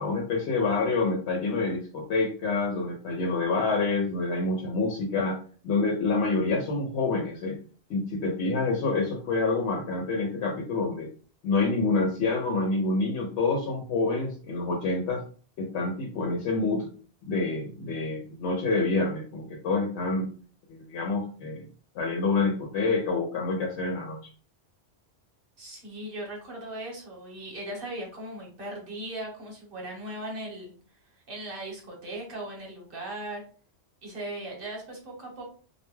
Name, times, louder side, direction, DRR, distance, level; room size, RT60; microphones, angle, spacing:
voice 1, 0.0-5.4 5.6-7.6 7.9-11.1 11.4-15.2 15.6-16.9 17.3-20.3 20.7-21.7 21.9-24.3, left 3 dB, 90° left, 0 dB, 0.9 m, -27 dB
voice 2, 25.6-30.7 31.3-33.4 34.0-35.4, right 1 dB, 55° right, -1 dB, 1.0 m, -38 dB
2.3 x 2.2 x 3.0 m, 0.41 s
omnidirectional pair, 1.1 m